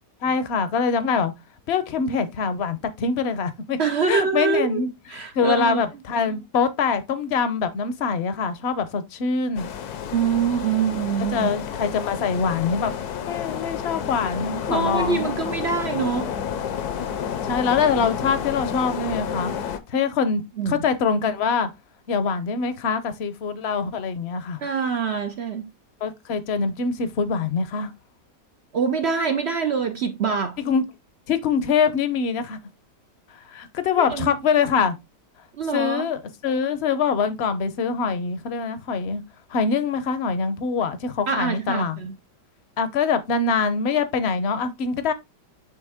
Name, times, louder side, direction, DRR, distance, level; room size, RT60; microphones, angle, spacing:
voice 1, 0.2-1.3 1.7-3.8 4.1-4.9 5.3-9.7 11.3-12.9 13.3-15.4 17.4-19.5 19.9-21.7 22.1-24.6 26.0-27.9 30.6-30.8 31.3-32.6 33.5-35.0 35.7-39.2 39.5-42.0 42.8-45.1, left 5 dB, 50° left, 0.8 m, -24 dB
voice 2, 3.8-5.8 10.1-11.5 14.7-16.3 20.6-20.8 24.6-25.7 28.7-30.6 34.0-34.3 35.5-36.1 41.3-42.2, right 6 dB, 65° right, 0.6 m, -25 dB
sound 1, 9.6-19.8, left 8 dB, 70° left, 1.2 m, -30 dB
8.9 x 3.3 x 3.5 m
omnidirectional pair, 1.8 m